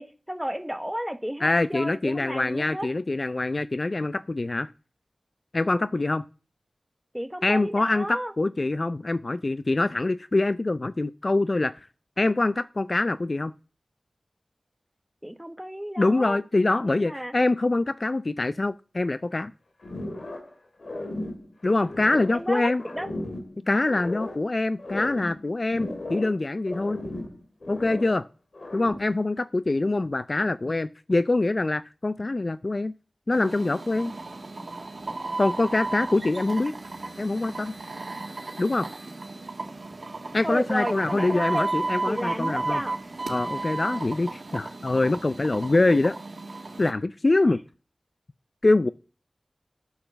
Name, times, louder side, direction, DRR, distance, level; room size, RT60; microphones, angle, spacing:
voice 1, 0.0-2.9 7.1-8.3 15.2-16.4 16.8-17.3 22.3-23.1 40.4-41.7 42.1-43.0 47.4-47.6, equal, 5° right, 1.2 m, -33 dB
voice 2, 1.4-4.7 5.5-6.2 7.4-11.7 12.2-13.5 16.0-19.5 21.6-22.8 23.7-27.0 27.7-28.2 28.7-32.9 33.3-34.1 35.4-36.7 37.2-37.8 38.6-38.9 40.3-42.8 43.3-46.2 46.8-47.6 48.6-48.9, left 2 dB, 50° left, 0.4 m, -24 dB
sound 1, 19.8-20.5 20.8-22.5 22.8-24.5 24.8-26.4 26.7-28.2 28.5-29.2, left 1 dB, 75° left, 2.2 m, -36 dB
sound 2, 33.3-46.9, right 2 dB, 65° right, 1.7 m, -34 dB
8.6 x 7.1 x 6.8 m
wide cardioid pair, 65°, 0 cm